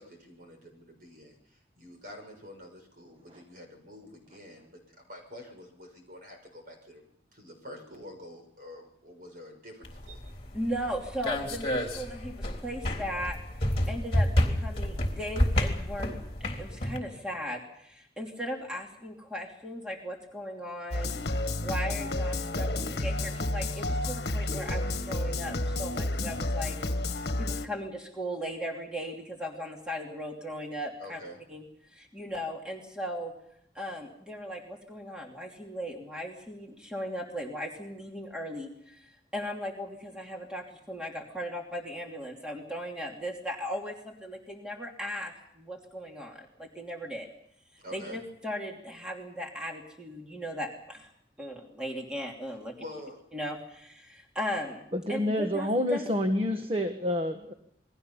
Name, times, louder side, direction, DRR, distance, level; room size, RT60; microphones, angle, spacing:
voice 1, 0.0-10.2 26.9-27.0 31.0-31.4 47.8-48.2 52.8-53.2, left 1 dB, 50° right, 3 dB, 6.7 m, -47 dB
sound 1, 9.8-17.0, equal, 30° left, 3.5 m, -30 dB
voice 2, 10.5-13.4 13.6-16.2 16.6-21.1 21.6-26.8 27.4-31.2 31.5-33.3 33.7-47.3 47.9-51.1 51.4-52.7 53.3-56.0, equal, 5° right, 0 dB, 2.8 m, -37 dB
sound 2, 20.9-27.7, left 2 dB, 65° left, 1.4 m, -31 dB
voice 3, 54.9-57.5, left 1 dB, 30° right, 5 dB, 1.4 m, -28 dB
28.5 x 21.5 x 5.6 m, 0.73 s
head